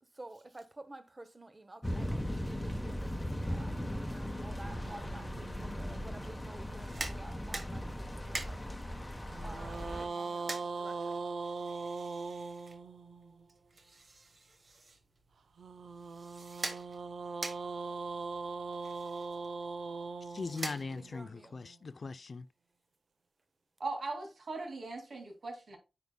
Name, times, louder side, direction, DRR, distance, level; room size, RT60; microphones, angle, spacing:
voice 1, 0.1-8.8 9.4-11.2 11.6-11.8 20.9-21.6, right 2 dB, 25° right, 0.8 m, -51 dB
sound 1, 1.8-10.1, equal, 15° left, 1.0 m, -38 dB
sound 2, 4.6-7.0 9.3-13.5 15.6-21.8, right 4 dB, 85° right, 0.5 m, -41 dB
sound 3, 6.6-21.3, right 3 dB, 50° right, 1.1 m, -46 dB
voice 2, 20.2-22.5, left 4 dB, 50° left, 0.4 m, -40 dB
voice 3, 23.8-25.8, right 3 dB, 65° right, 2.3 m, -39 dB
9.4 x 5.3 x 2.2 m
wide cardioid pair, 105°, 0 cm